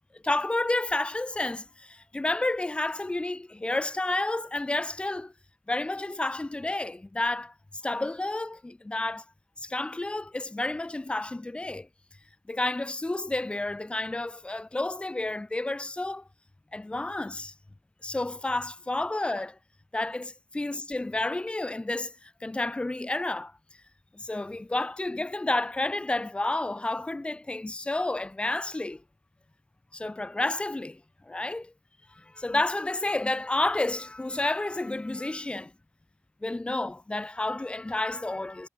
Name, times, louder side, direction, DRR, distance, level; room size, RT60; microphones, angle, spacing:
voice 1, 0.2-5.3 5.7-7.5 7.8-9.2 9.6-11.9 12.5-16.2 16.7-17.5 18.0-19.6 19.9-23.5 24.1-29.0 29.9-31.0 31.3-31.7 32.2-35.7 36.4-38.7, left 2 dB, 20° left, 0.7 m, -30 dB
cardioid pair, 55°, 5 cm